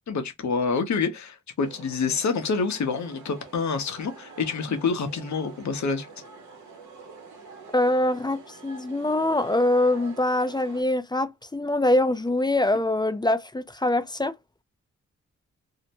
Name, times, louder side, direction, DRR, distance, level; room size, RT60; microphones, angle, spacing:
voice 1, 0.1-6.1, left 5 dB, 70° left, 0.9 m, -27 dB
sound 1, 1.6-10.8, right 4 dB, 80° right, 0.9 m, -46 dB
voice 2, 7.7-14.3, left 1 dB, 15° left, 0.4 m, -24 dB
2.7 x 2.1 x 2.8 m
cardioid pair, 60°, 29 cm